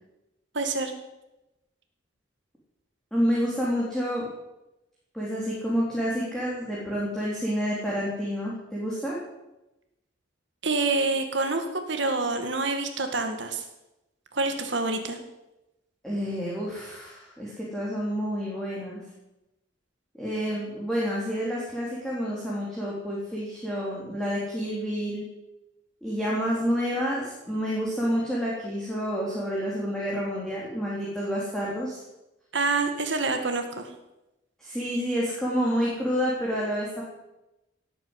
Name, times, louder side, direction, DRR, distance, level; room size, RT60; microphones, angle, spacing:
voice 1, 0.5-0.9 10.6-13.6 14.3-15.2 32.5-33.9, right 3 dB, 70° right, 6 dB, 1.9 m, -27 dB
voice 2, 3.1-4.3 5.1-9.1 16.0-19.0 20.2-25.3 26.0-32.0 34.6-37.0, equal, 5° left, -6 dB, 3.5 m, -29 dB
17.5 x 9.0 x 8.1 m, 0.95 s
head